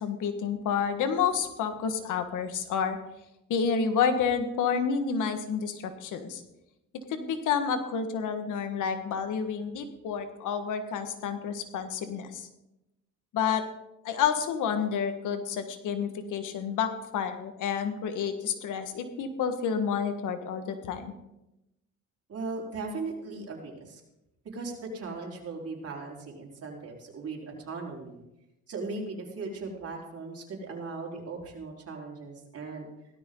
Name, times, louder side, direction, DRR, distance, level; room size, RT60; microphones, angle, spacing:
voice 1, 0.0-3.0 3.5-6.4 6.9-12.5 13.3-13.6 14.0-21.1, left 6 dB, 85° left, 8 dB, 1.6 m, -29 dB
voice 2, 22.3-24.0 24.5-28.2 28.7-32.9, right 3 dB, 50° right, -1 dB, 4.4 m, -38 dB
17.0 x 13.0 x 3.9 m, 0.91 s
cardioid pair, 90°, 30 cm